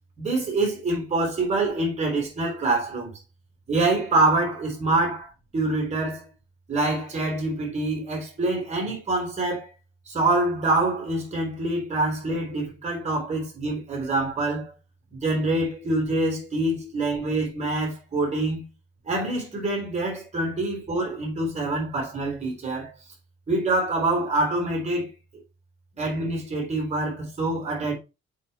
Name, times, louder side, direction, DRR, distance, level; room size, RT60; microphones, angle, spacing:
voice 1, 0.2-3.1 3.7-6.3 6.7-9.7 10.1-14.7 15.1-18.7 19.0-22.9 23.5-25.1 26.0-27.9, right 2 dB, 35° right, 3.7 m, -25 dB
7.1 x 4.4 x 3.3 m
cardioid pair, 90°, 20 cm